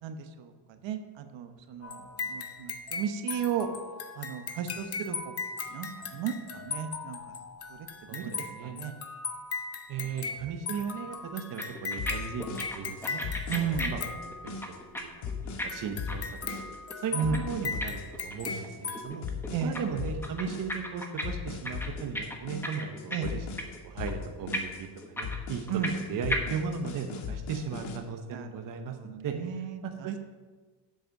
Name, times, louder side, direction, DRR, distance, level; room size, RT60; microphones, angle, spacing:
voice 1, 0.0-3.7 4.2-5.3 5.7-7.2 7.7-8.9 10.0-10.1 13.5-13.9 17.1-17.5 19.5-19.8 23.1-23.3 25.7-25.9 28.3-30.1, right 7 dB, 65° right, 7 dB, 1.1 m, -34 dB
sound 1, 1.8-14.9 15.7-19.0, left 5 dB, 30° left, 0.9 m, -38 dB
voice 2, 8.1-8.8 9.9-12.5 12.7-13.2 13.5-14.6 14.9-15.1 15.6-16.3 17.0-17.1 17.4-19.3 19.6-29.3 29.8-30.2, right 6 dB, 45° right, 4 dB, 0.9 m, -36 dB
sound 2, 11.3-11.4 11.6-12.1 12.4-15.0 15.3-18.7 18.9-19.8 20.1-21.2 21.5-23.3 23.6-23.8 24.1-24.2 24.5-26.0 26.3-26.4, left 1 dB, 5° left, 1.1 m, -35 dB
sound 3, 12.0-28.0, left 5 dB, 75° left, 1.6 m, -38 dB
7.8 x 7.7 x 6.3 m, 1.3 s
cardioid pair, 145°, 48 cm